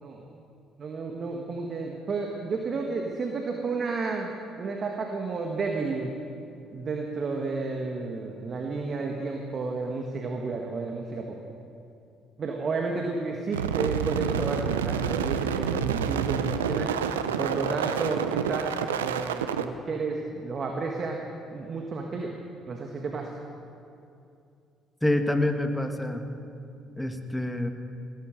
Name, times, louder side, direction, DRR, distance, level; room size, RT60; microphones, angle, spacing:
voice 1, 0.8-6.1 6.7-11.4 12.4-16.9 17.4-21.2 21.5-22.3 22.7-23.3, right 4 dB, 45° right, 2 dB, 1.6 m, -32 dB
sound 1, 13.5-19.6, right 7 dB, 90° right, 0.5 m, -28 dB
voice 2, 25.0-26.2 27.0-27.7, left 1 dB, 5° left, 6 dB, 1.8 m, -26 dB
17.5 x 14.0 x 5.2 m, 2.6 s
hypercardioid pair, 50°, 0 cm